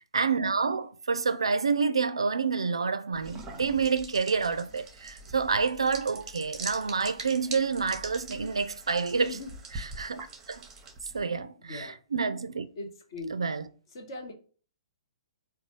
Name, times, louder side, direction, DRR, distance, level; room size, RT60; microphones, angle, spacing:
voice 1, 0.1-9.4 9.8-10.7 11.1-12.7 13.3-13.6, right 5 dB, 70° right, 0.3 m, -28 dB
sound 1, 3.1-11.2, right 3 dB, 15° right, 0.7 m, -43 dB
voice 2, 11.3-12.0 12.8-13.6 13.9-14.3, left 2 dB, 50° left, 1.1 m, -41 dB
3.9 x 2.3 x 3.0 m
figure-of-eight pair, 120°, 3 cm